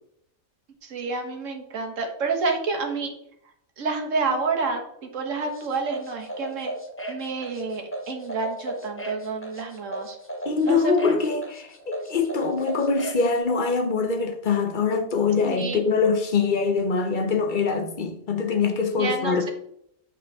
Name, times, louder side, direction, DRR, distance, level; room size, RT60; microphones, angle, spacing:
voice 1, 0.8-3.1 3.8-6.7 7.1-10.2 10.6-10.9 15.4-15.8 19.0-19.5, right 4 dB, 65° right, 1.5 m, -29 dB
sound 1, 5.4-13.3, right 1 dB, 10° left, 0.7 m, -35 dB
voice 2, 10.5-19.5, left 5 dB, 45° left, 0.7 m, -23 dB
8.1 x 5.1 x 3.5 m
omnidirectional pair, 1.5 m